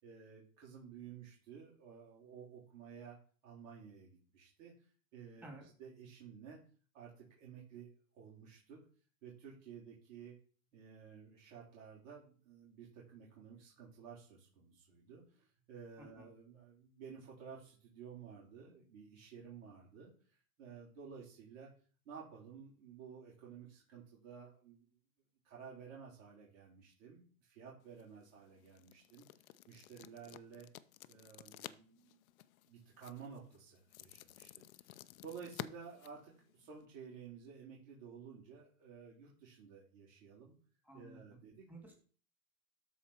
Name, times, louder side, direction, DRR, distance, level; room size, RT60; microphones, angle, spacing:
voice 1, 0.0-3.2 3.4-4.7 5.1-6.6 6.9-7.9 8.1-8.8 9.2-10.3 10.7-20.1 20.6-21.7 22.0-25.0 25.4-30.7 31.1-32.2 32.7-40.5 40.9-41.7, right 6 dB, 65° right, -5 dB, 4.3 m, -53 dB
voice 2, 16.0-16.3 40.8-41.4 41.7-42.0, right 2 dB, 5° right, 0 dB, 2.5 m, -54 dB
sound 1, 27.8-36.9, left 14 dB, 80° left, 0.7 m, -53 dB
13.0 x 4.8 x 4.4 m, 0.42 s
supercardioid pair, 140°, 41 cm